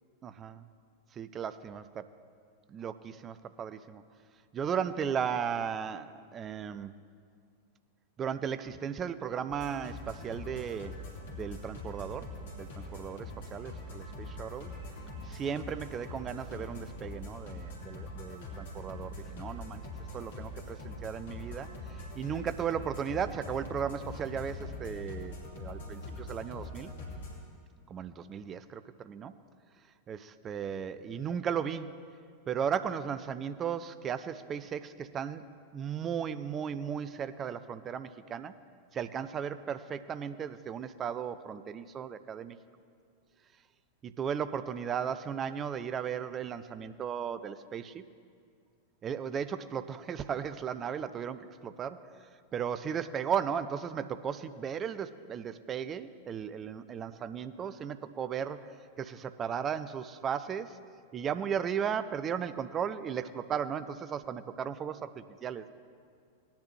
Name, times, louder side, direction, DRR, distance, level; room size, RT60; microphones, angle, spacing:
voice 1, 0.2-0.6 1.1-2.1 2.7-4.0 4.5-7.0 8.2-11.0 11.3-14.7 15.2-19.8 20.1-26.9 27.9-29.3 30.1-32.0 32.5-35.5 35.7-38.5 38.9-42.6 44.0-48.0 49.0-60.8 61.1-65.7, right 7 dB, 25° right, 12 dB, 0.5 m, -36 dB
sound 1, 9.5-27.4, left 2 dB, 55° left, 2.6 m, -43 dB
18.0 x 10.0 x 3.1 m, 2.2 s
figure-of-eight pair, 90°, 0 cm